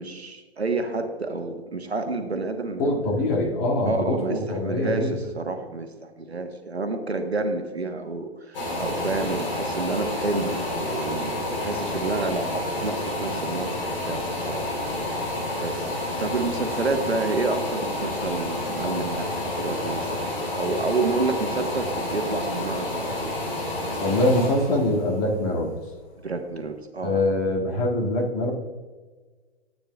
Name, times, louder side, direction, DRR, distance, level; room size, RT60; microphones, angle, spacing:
voice 1, 0.0-3.3 3.8-14.6 15.0-15.9 16.2-23.4 26.2-27.2, right 3 dB, 85° right, 6 dB, 1.2 m, -29 dB
voice 2, 2.8-5.2 24.0-25.7 27.0-28.5, left 1 dB, 35° left, -1 dB, 2.1 m, -23 dB
sound 1, 8.5-26.2 26.7-26.8, left 2 dB, 60° left, 3.1 m, -29 dB
13.0 x 8.7 x 2.3 m, 1.4 s
figure-of-eight pair, 120°, 31 cm